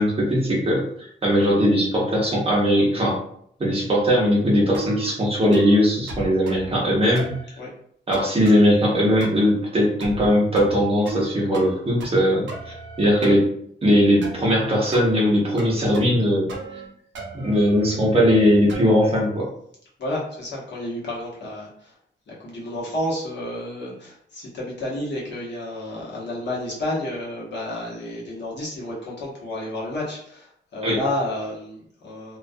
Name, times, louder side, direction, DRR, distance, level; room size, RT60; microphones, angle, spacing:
voice 1, 0.0-3.2 3.6-7.6 8.1-13.5 13.8-16.5 17.3-19.5 30.8-31.0, equal, 30° right, -3 dB, 0.7 m, -19 dB
sound 1, 4.7-5.1 5.5-5.8 6.1-6.7 7.2-7.4 8.1-8.6 9.2-9.5 10.0-10.3 10.6-11.3 11.5-12.2 12.5-13.4 14.2-14.5 14.9-15.1 15.6-16.2 16.5-16.9 17.2-19.0, right 3 dB, 70° right, 0.6 m, -35 dB
voice 2, 20.0-22.0 22.3-32.4, left 1 dB, 60° left, -4 dB, 0.9 m, -31 dB
2.3 x 2.2 x 2.5 m, 0.66 s
wide cardioid pair, 170°, 20 cm